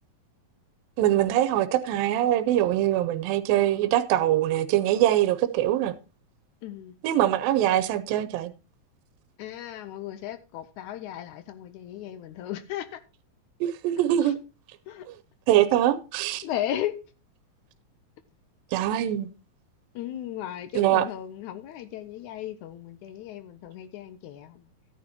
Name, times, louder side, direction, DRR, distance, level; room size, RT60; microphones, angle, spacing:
voice 1, 1.0-5.9 7.0-8.5 13.6-14.4 15.5-16.5 18.7-19.3 20.8-21.1, right 12 dB, 85° right, 2.4 m, -23 dB
voice 2, 6.6-7.0 9.4-13.0 14.2-14.3 14.9-15.1 16.4-17.0 20.0-24.7, left 12 dB, 75° left, 1.8 m, -35 dB
13.5 x 9.7 x 2.8 m
omnidirectional pair, 4.0 m